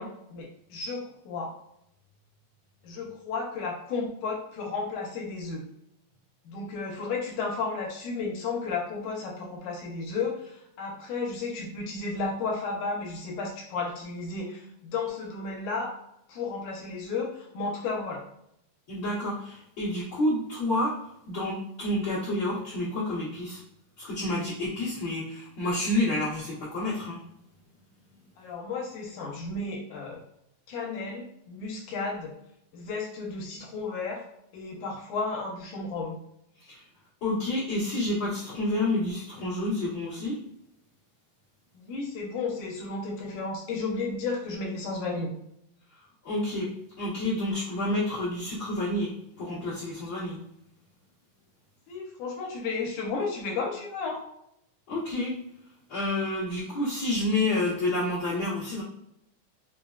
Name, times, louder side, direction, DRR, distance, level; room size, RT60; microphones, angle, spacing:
voice 1, 0.0-1.5 2.8-5.6 6.5-15.9 16.3-18.2 28.4-30.2 30.7-32.3 32.7-34.2 34.5-36.2 41.8-45.3 51.9-54.2, left 4 dB, 80° left, -1 dB, 2.1 m, -33 dB
voice 2, 18.9-20.9 21.3-23.6 24.0-27.2 36.6-36.8 37.2-40.4 46.2-46.7 47.0-49.1 49.4-50.4 54.9-55.4 55.9-58.8, left 1 dB, 55° left, -11 dB, 1.4 m, -29 dB
5.2 x 2.1 x 2.3 m, 0.77 s
omnidirectional pair, 3.6 m